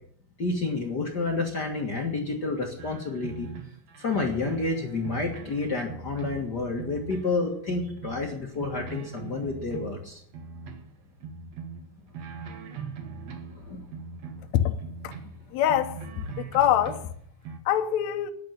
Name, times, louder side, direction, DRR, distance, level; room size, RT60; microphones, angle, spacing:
voice 1, 0.4-3.5 4.0-10.2 13.5-13.8, left 3 dB, 50° left, 1.2 m, -29 dB
sound 1, 2.8-7.4 7.6-10.9 11.2-13.6 13.9-17.6, right 5 dB, 60° right, 1.9 m, -41 dB
voice 2, 15.5-16.0 16.4-17.0 17.7-18.3, left 11 dB, 75° left, 1.7 m, -23 dB
10.0 x 9.3 x 8.9 m
omnidirectional pair, 4.6 m